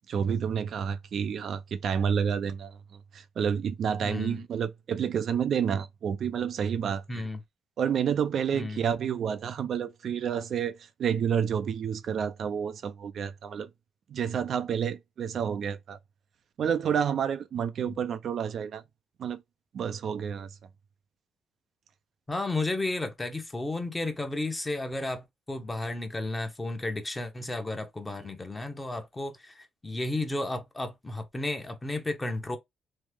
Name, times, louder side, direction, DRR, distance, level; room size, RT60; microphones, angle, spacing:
voice 1, 0.1-7.3 7.8-13.7 14.1-16.0 16.6-18.8 19.2-19.4 19.7-20.5 28.2-28.3, right 7 dB, 60° right, 0.4 m, -29 dB
voice 2, 4.0-4.4 7.1-7.4 8.5-8.8 17.8-17.9 22.3-32.6, left 2 dB, 15° left, 0.8 m, -33 dB
3.2 x 2.0 x 3.4 m
cardioid pair, 90°, 0 cm